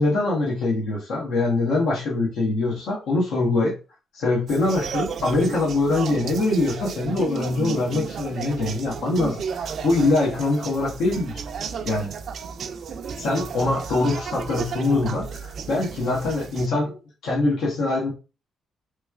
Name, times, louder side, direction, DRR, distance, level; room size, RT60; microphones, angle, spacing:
voice 1, 0.0-3.7 4.1-11.4 11.8-12.1 13.2-17.0 17.2-18.1, left 2 dB, 85° left, 1.1 m, -23 dB
sound 1, 4.5-16.7, right 6 dB, 60° right, 0.3 m, -33 dB
3.3 x 3.1 x 2.4 m
cardioid pair, 100°, 0 cm